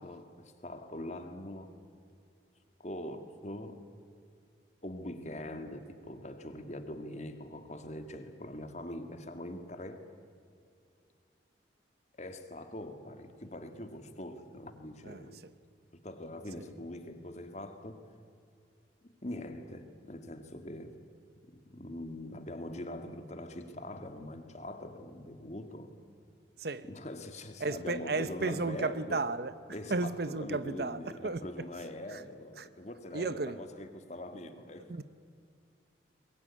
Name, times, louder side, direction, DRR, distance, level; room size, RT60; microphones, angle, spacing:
voice 1, 0.0-1.7 2.8-3.8 4.8-10.0 12.2-15.4 15.9-18.1 19.0-21.0 21.5-25.9 26.9-29.2 29.7-34.9, left 1 dB, 35° left, 1.9 m, -43 dB
voice 2, 27.6-29.5 29.9-31.5 32.1-32.2 32.6-32.7 33.1-33.6 34.9-35.0, right 3 dB, 55° right, 0.8 m, -33 dB
24.0 x 21.0 x 9.9 m
head